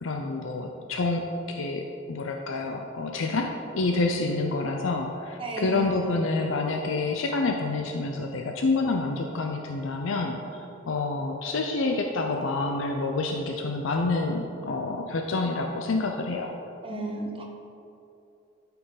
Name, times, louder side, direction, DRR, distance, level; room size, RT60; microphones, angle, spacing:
voice 1, 0.0-16.5, left 3 dB, 70° left, 3 dB, 0.6 m, -28 dB
voice 2, 5.4-5.8 16.8-17.4, right 2 dB, 25° right, -1 dB, 1.2 m, -33 dB
11.5 x 5.7 x 4.0 m, 2.7 s
head